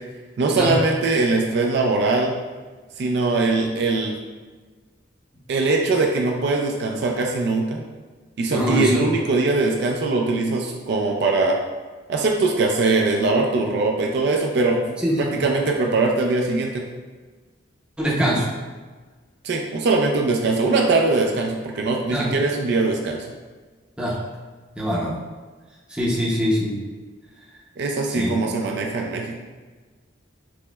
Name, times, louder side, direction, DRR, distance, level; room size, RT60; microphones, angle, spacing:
voice 1, 0.4-2.3 3.0-4.2 5.5-7.8 8.4-11.6 12.1-16.8 19.4-23.3 27.8-29.4, right 3 dB, 55° right, 1 dB, 0.3 m, -21 dB
voice 2, 8.5-9.0 15.0-15.4 18.0-18.5 22.1-22.3 24.0-24.2 24.8-25.2 25.9-26.7 28.1-28.3, equal, 5° right, -6 dB, 0.6 m, -23 dB
5.9 x 2.1 x 2.2 m, 1.4 s
head